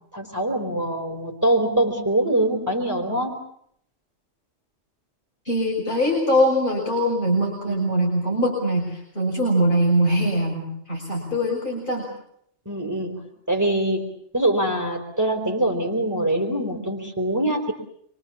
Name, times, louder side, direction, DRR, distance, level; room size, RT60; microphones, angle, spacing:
voice 1, 0.1-3.4 7.7-7.9 12.7-13.2 13.5-14.0 14.3-17.7, right 1 dB, 15° right, 2 dB, 4.3 m, -23 dB
voice 2, 5.4-12.1, equal, 45° left, -3 dB, 6.6 m, -22 dB
27.5 x 24.0 x 7.3 m, 0.68 s
omnidirectional pair, 1.2 m